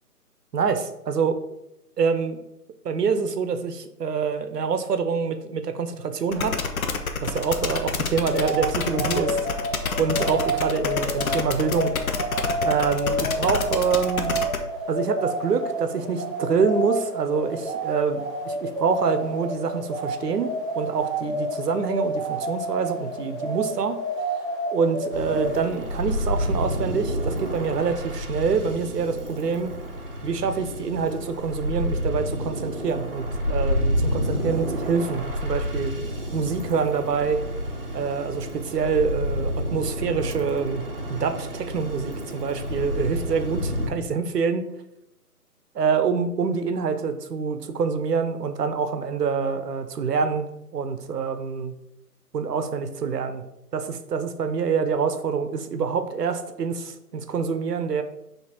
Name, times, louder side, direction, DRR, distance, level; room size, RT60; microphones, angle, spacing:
voice 1, 0.5-1.4 2.0-2.4 2.8-6.6 7.2-9.4 10.0-11.9 12.6-14.4 14.9-24.0 24.7-29.7 30.2-35.9 36.3-37.4 37.9-44.6 45.8-51.7 52.3-53.4 53.7-58.0, right 5 dB, 80° right, 9 dB, 0.7 m, -26 dB
sound 1, 6.3-14.6, left 5 dB, 60° left, 0.6 m, -28 dB
sound 2, 8.3-25.6, right 1 dB, 10° left, 1.1 m, -30 dB
sound 3, 25.1-43.9, equal, 35° right, 0.6 m, -29 dB
5.9 x 2.7 x 2.9 m, 0.86 s
hypercardioid pair, 165°, 48 cm